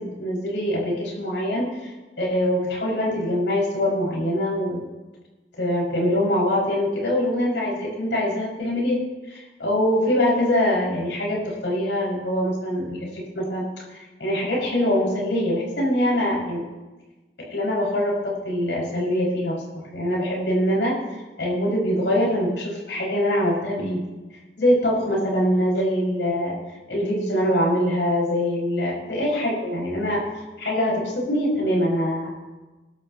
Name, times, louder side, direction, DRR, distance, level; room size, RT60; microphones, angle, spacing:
voice 1, 0.0-4.8 5.6-9.0 9.3-16.6 17.4-19.6 19.9-21.0 21.4-24.1 24.6-26.6 26.9-30.2 30.6-32.3, left 1 dB, 80° left, -3 dB, 5.8 m, -23 dB
24.0 x 12.0 x 2.9 m, 1.2 s
head